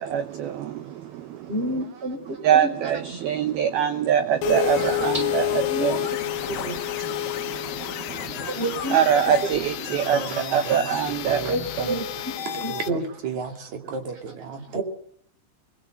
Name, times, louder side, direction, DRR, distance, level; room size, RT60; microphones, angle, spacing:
voice 1, 0.0-1.5 2.4-6.1 6.6-6.7 7.1-8.5 8.9-11.4, right 9 dB, 80° right, 2.2 m, -24 dB
voice 2, 1.5-2.7 3.1-3.2 4.4-4.8 5.1-5.2 5.7-5.9 6.5-6.9 8.5-9.0 11.5-12.0 12.6-13.0 14.7-14.8, right 2 dB, 15° right, 3.7 m, -28 dB
sound 1, 4.4-12.9, left 13 dB, 70° left, 2.2 m, -30 dB
voice 3, 9.9-10.8 11.1-12.0 12.4-14.8, right 5 dB, 45° right, 3.0 m, -34 dB
23.5 x 21.0 x 7.9 m
omnidirectional pair, 6.0 m